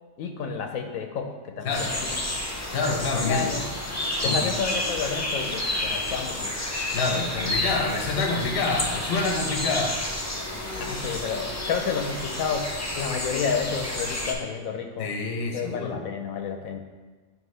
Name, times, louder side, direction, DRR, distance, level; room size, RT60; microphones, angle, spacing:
voice 1, 0.2-2.2 3.3-3.6 4.2-6.5 10.8-12.7 12.9-15.1 15.5-16.8, left 6 dB, 90° left, 4 dB, 1.1 m, -30 dB
sound 1, 1.7-14.3, left 1 dB, 25° left, 0.3 m, -30 dB
voice 2, 2.7-3.5 4.2-4.5 6.9-10.0 15.0-16.0, left 3 dB, 50° left, 2 dB, 0.9 m, -27 dB
9.2 x 3.2 x 3.2 m, 1.3 s
omnidirectional pair, 1.4 m